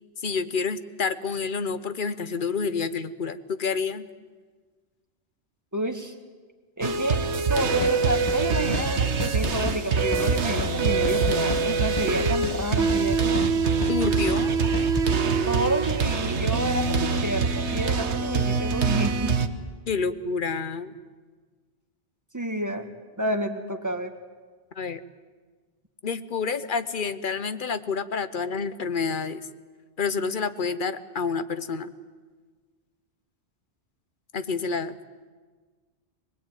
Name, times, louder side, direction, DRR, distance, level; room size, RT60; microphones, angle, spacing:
voice 1, 0.2-4.1 13.9-14.5 19.9-20.9 24.8-25.0 26.0-29.5 30.0-31.9 34.3-35.0, left 5 dB, 50° left, 12 dB, 1.1 m, -28 dB
voice 2, 5.7-6.1 6.8-7.2 7.5-13.5 14.7-14.8 15.5-19.4 22.3-22.9 23.2-24.1, right 1 dB, 15° right, 5 dB, 1.8 m, -29 dB
sound 1, 6.8-19.5, right 4 dB, 75° right, 1.5 m, -24 dB
sound 2, 7.8-8.0 8.3-8.4 8.7-8.9 9.2-9.8 10.1-10.3 10.6-10.7 11.0-11.7 12.0-12.1 12.4-12.6 12.9-13.5 13.8-14.0 14.3-14.4 14.7-15.1, left 3 dB, 25° left, 1.2 m, -32 dB
25.0 x 19.5 x 9.2 m, 1.5 s
omnidirectional pair, 1.1 m